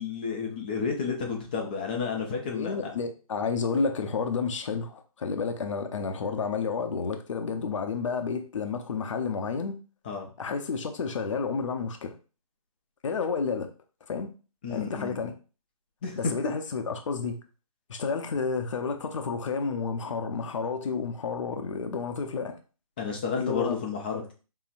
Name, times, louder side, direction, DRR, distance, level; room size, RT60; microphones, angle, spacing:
voice 1, 0.0-2.9 10.1-10.3 14.6-15.2 16.0-16.2 16.4-16.5 23.0-24.3, left 5 dB, 15° left, 0.4 m, -31 dB
voice 2, 2.4-9.8 10.4-12.1 13.0-13.7 14.1-14.3 14.7-15.3 16.2-17.4 17.9-22.6 23.4-23.8, left 5 dB, 55° left, 0.7 m, -30 dB
5.6 x 2.1 x 2.5 m
hypercardioid pair, 160°, 19 cm